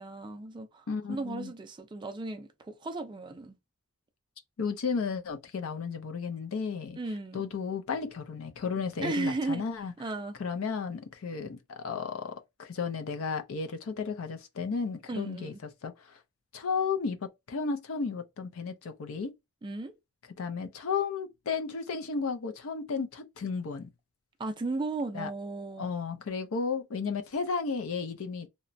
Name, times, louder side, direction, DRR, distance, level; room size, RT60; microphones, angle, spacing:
voice 1, 0.0-3.6 7.0-7.4 9.0-9.6 10.0-10.4 15.1-15.6 19.6-19.9 24.4-25.9, right 3 dB, 20° right, 0.3 m, -35 dB
voice 2, 0.9-1.5 4.6-7.0 7.3-9.9 10.4-15.5 15.8-16.2 16.5-17.2 17.5-19.3 20.4-23.9 25.1-25.3 25.8-28.5, left 5 dB, 65° left, 0.4 m, -33 dB
2.9 x 2.1 x 2.5 m
head